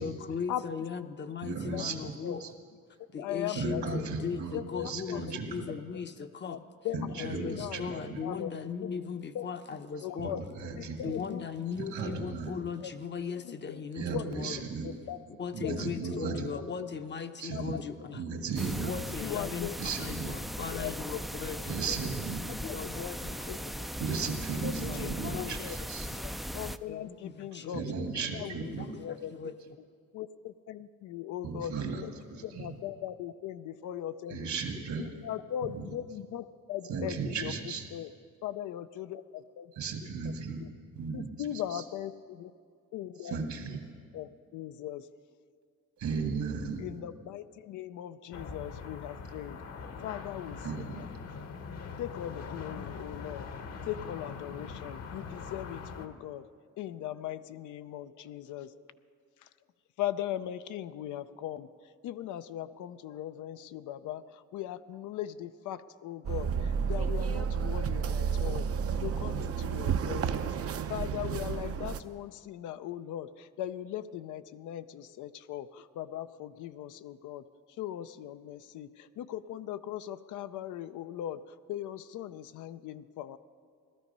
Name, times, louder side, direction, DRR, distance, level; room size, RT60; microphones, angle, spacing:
voice 1, 0.0-2.4 3.1-6.6 7.2-10.4 11.0-14.6 15.4-18.2 18.8-21.8 22.6-23.9 24.8-25.6 26.0-26.1 26.9-28.1 28.6-29.8, left 6 dB, 35° left, 8 dB, 0.7 m, -38 dB
voice 2, 1.4-2.0 2.4-2.5 3.6-5.6 6.9-8.2 10.2-11.1 11.8-12.5 14.0-15.0 15.5-16.5 17.4-17.8 18.1-18.9 19.8-20.3 21.7-22.5 24.0-26.1 27.7-28.9 31.4-32.0 32.3-32.7 34.3-35.0 35.7-35.8 36.9-37.9 39.8-40.6 41.0-41.3 41.7-41.8 43.2-43.8 46.0-46.9 50.6-51.1, right 5 dB, 65° right, 4 dB, 1.9 m, -35 dB
voice 3, 3.2-4.3 4.5-5.3 6.4-6.6 6.8-8.5 8.8-8.9 9.3-9.5 10.0-10.4 10.7-11.4 12.8-12.9 13.3-13.8 14.1-14.3 14.8-15.2 15.6-16.1 16.5-16.9 17.5-17.8 19.2-19.8 20.7-21.5 21.9-22.0 22.5-23.6 24.2-24.3 24.6-25.8 26.1-27.8 28.3-29.4 30.1-32.1 32.4-34.4 35.0-38.1 38.4-39.7 40.6-40.7 41.1-42.5 42.9-43.4 44.1-45.1 46.8-51.1 51.4-51.5 52.0-56.5 56.8-58.8 59.4-59.5 60.0-68.7 69.0-77.4 77.8-83.4, left 11 dB, 80° left, 12 dB, 0.6 m, -39 dB
sound 1, 18.6-26.8, equal, ahead, 0.4 m, -38 dB
sound 2, 48.3-56.1, left 5 dB, 55° left, 1.1 m, -42 dB
sound 3, 66.2-72.0, right 6 dB, 50° right, 0.7 m, -31 dB
16.5 x 12.5 x 5.4 m, 2.2 s
cardioid pair, 90°, 30 cm